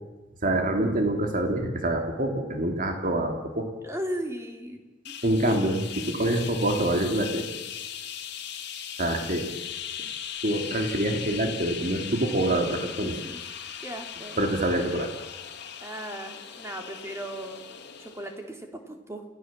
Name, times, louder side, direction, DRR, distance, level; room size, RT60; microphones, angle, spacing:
voice 1, 0.4-3.7 5.2-7.4 9.0-9.5 10.4-13.1 14.4-15.1, right 1 dB, 45° right, 4 dB, 3.0 m, -26 dB
voice 2, 3.8-4.8 5.0-5.1 6.2-6.4 13.0-13.4 13.8-14.4 15.8-17.6 18.0-19.2, right 1 dB, 15° right, 4 dB, 3.0 m, -37 dB
sound 1, 5.0-18.4, left 9 dB, 60° left, 2.5 m, -38 dB
29.0 x 16.0 x 7.5 m, 1.2 s
head